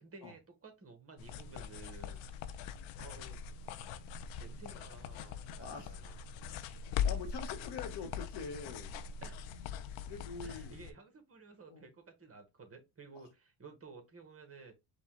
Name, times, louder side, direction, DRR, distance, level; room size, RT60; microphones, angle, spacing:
voice 1, 0.0-2.6 3.0-3.4 4.4-6.2 9.2-9.5 10.4-14.7, right 4 dB, 30° right, 1.4 m, -54 dB
sound 1, 1.2-10.9, left 8 dB, 85° left, 0.7 m, -41 dB
voice 2, 5.5-5.9 6.8-8.9 9.5-9.7 10.1-10.7 11.7-11.8, left 5 dB, 60° left, 1.1 m, -44 dB
5.3 x 2.4 x 3.8 m
cardioid pair, 100°, 46 cm